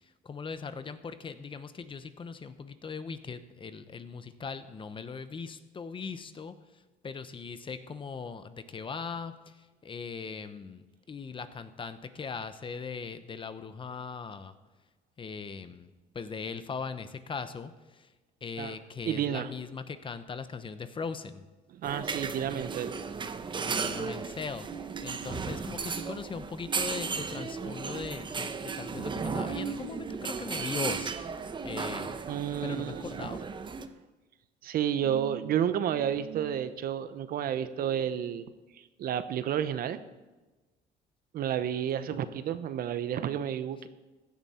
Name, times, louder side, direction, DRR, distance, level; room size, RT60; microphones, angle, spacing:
voice 1, 0.0-14.5 15.2-18.1 18.4-21.4 23.6-31.2 31.6-32.2 32.6-33.4 42.3-42.4, left 5 dB, 30° left, 11 dB, 0.9 m, -40 dB
voice 2, 19.0-19.5 21.7-23.0 32.3-33.3 33.8-33.9 34.6-38.4 38.7-40.0 41.3-43.9, right 9 dB, 60° right, 12 dB, 0.9 m, -31 dB
sound 1, 21.8-33.9, right 5 dB, 30° right, 0.8 m, -35 dB
16.0 x 11.0 x 4.4 m, 1.2 s
cardioid pair, 110°, 17 cm